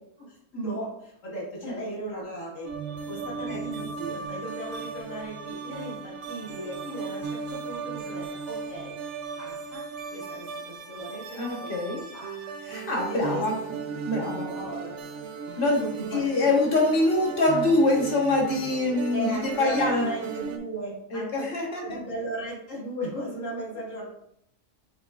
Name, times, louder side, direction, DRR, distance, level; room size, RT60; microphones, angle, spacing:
voice 1, 0.2-2.7 3.1-9.0 9.3-9.8 10.1-12.3 13.1-13.4 14.1-14.9 15.8-16.6 19.1-21.4 21.8-24.1, right 1 dB, 70° left, -7 dB, 1.9 m, -37 dB
sound 1, 2.6-20.6, right 5 dB, 65° right, 0.9 m, -36 dB
voice 2, 11.3-12.0 12.6-13.5 14.0-14.5 15.6-15.8 16.1-20.1 21.1-22.0, left 2 dB, 45° left, -1 dB, 1.2 m, -24 dB
7.1 x 3.0 x 2.3 m, 0.73 s
omnidirectional pair, 1.4 m